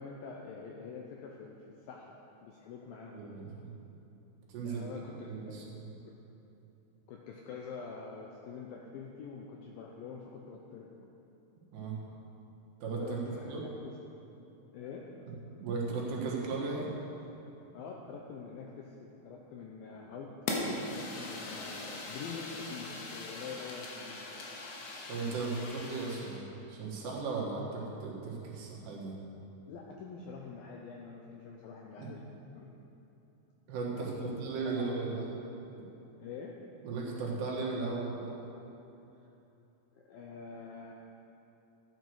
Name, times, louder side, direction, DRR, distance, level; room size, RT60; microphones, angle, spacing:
voice 1, 0.0-1.6 1.9-3.2 4.6-5.7 7.1-10.9 13.0-13.9 14.7-15.1 17.7-19.0 19.3-20.3 20.7-24.3 29.7-32.2 32.5-32.7 33.9-34.4 34.7-35.3 36.2-36.5 39.9-40.9, left 5 dB, 85° left, -1 dB, 2.1 m, -45 dB
voice 2, 3.1-3.7 4.5-5.9 11.7-12.0 12.8-13.2 13.5-13.7 15.2-15.3 15.6-16.9 25.1-29.2 32.0-32.1 33.7-35.3 36.8-38.4, right 4 dB, 75° right, -3 dB, 3.7 m, -36 dB
Fire, 20.5-26.4, left 2 dB, 65° left, 2.9 m, -40 dB
13.5 x 9.3 x 4.7 m, 3.0 s
omnidirectional pair, 5.0 m